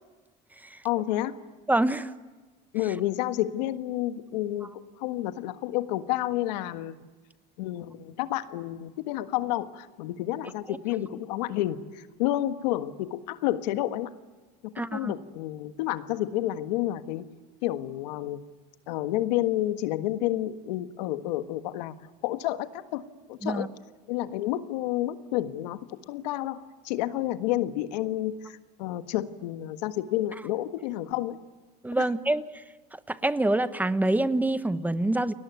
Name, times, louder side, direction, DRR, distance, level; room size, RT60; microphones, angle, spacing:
voice 1, 0.8-1.4 2.7-6.9 7.6-14.1 14.6-17.3 17.6-18.4 18.9-21.9 22.2-23.0 23.3-23.7 24.1-31.4 32.0-32.1, left 14 dB, 85° left, 10 dB, 1.6 m, -30 dB
voice 2, 1.7-2.1 10.7-10.8 14.8-15.1 23.4-23.7 31.8-32.6 33.1-35.3, right 1 dB, 10° right, 13 dB, 1.1 m, -26 dB
30.0 x 21.0 x 9.4 m, 1.3 s
supercardioid pair, 110°, 21 cm